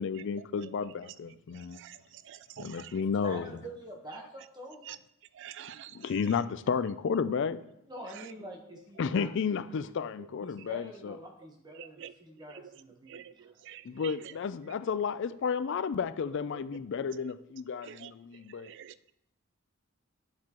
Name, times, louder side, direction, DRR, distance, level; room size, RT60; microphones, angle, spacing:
voice 1, 0.0-1.8 2.6-3.5 5.9-7.6 9.0-11.2 13.8-18.7, left 6 dB, 60° left, 15 dB, 0.4 m, -32 dB
voice 2, 0.6-0.9 1.5-3.0 4.8-5.0 5.3-6.2 8.1-8.3 10.2-10.3 10.6-10.7 11.8-12.1 12.5-12.7 13.1-14.3 16.5-16.6 17.8-18.1 18.5-19.1, right 10 dB, 60° right, 15 dB, 0.3 m, -48 dB
voice 3, 3.2-4.8 7.9-9.6 10.4-13.5, right 1 dB, 20° right, 1 dB, 1.1 m, -46 dB
11.0 x 7.4 x 3.0 m, 0.80 s
head